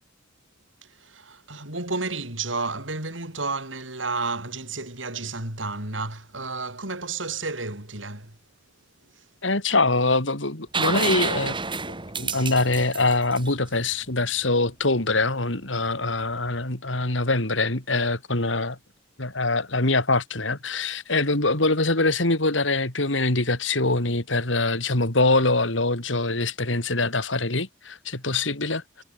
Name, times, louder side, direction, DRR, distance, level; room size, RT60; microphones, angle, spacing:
voice 1, 0.8-8.4 9.0-9.3, right 3 dB, 90° right, 7.7 m, -32 dB
voice 2, 9.4-11.5 12.2-18.8 19.2-29.0, left 2 dB, 80° left, 4.2 m, -24 dB
sound 1, 10.7-14.4 16.3-16.4, right 4 dB, 25° right, 3.9 m, -29 dB
head